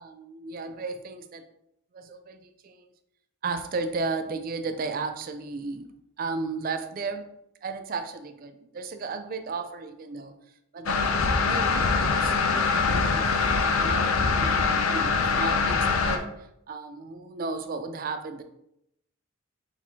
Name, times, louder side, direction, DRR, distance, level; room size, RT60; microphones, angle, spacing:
voice 1, 0.0-1.5 1.9-2.9 3.4-5.9 6.2-7.3 7.6-10.3 10.7-13.3 13.6-18.4, right 4 dB, 45° right, 8 dB, 0.4 m, -34 dB
sound 1, 10.9-16.2, left 4 dB, 85° left, 0.5 m, -23 dB
4.5 x 4.1 x 2.8 m, 0.80 s
head